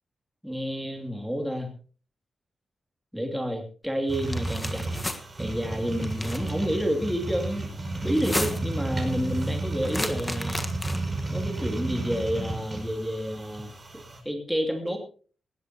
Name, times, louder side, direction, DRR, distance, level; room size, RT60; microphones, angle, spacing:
voice 1, 0.4-1.7 3.1-4.9 5.4-7.7 8.0-10.7 11.3-13.7 14.2-15.0, equal, 5° right, 3 dB, 2.7 m, -29 dB
sound 1, 4.1-14.2, right 2 dB, 25° right, 5.3 m, -32 dB
sound 2, 4.2-5.2 6.0-6.5 8.1-8.8 9.8-11.2, left 1 dB, 15° left, 1.5 m, -33 dB
19.0 x 15.5 x 2.9 m, 0.39 s
wide cardioid pair, 125°, 0 cm